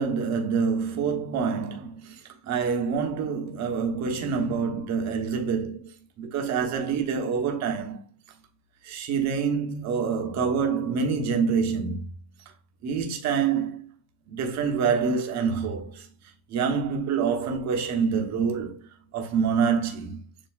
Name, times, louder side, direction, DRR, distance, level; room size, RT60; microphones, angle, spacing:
voice 1, 0.0-5.9 6.2-8.0 8.8-12.1 12.8-13.9 14.3-16.1 16.5-20.2, right 6 dB, 40° right, 1.0 m, -26 dB
7.2 x 2.9 x 2.4 m
cardioid pair, 135°, 44 cm